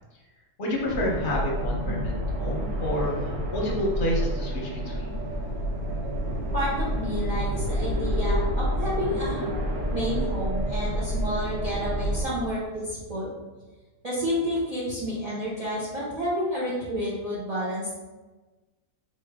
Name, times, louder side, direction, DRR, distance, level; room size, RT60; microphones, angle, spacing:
voice 1, 0.6-5.2, left 1 dB, 40° left, -3 dB, 0.9 m, -29 dB
sound 1, 0.8-12.3, equal, 60° right, 1.1 m, -28 dB
voice 2, 6.5-9.4 9.9-13.3 14.0-18.0, equal, 30° right, -9 dB, 0.8 m, -30 dB
4.3 x 3.2 x 3.5 m, 1.2 s
omnidirectional pair, 1.7 m